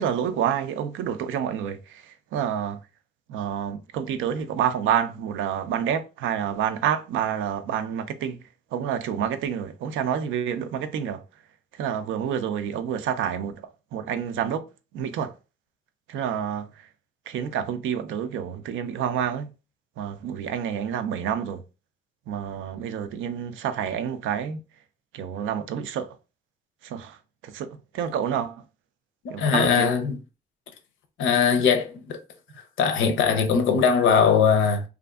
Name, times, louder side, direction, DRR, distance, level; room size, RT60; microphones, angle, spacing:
voice 1, 0.0-2.8 3.3-8.4 8.7-11.2 11.7-14.7 14.9-15.3 16.1-16.9 17.3-19.5 20.0-21.6 22.3-24.6 25.1-26.2 26.8-27.2 27.4-28.6 29.3-29.9, right 8 dB, 80° right, 0.4 m, -28 dB
voice 2, 29.2-30.2 31.2-32.2 32.8-34.8, left 6 dB, 80° left, 0.5 m, -20 dB
2.5 x 2.4 x 2.3 m
cardioid pair, 90°, 20 cm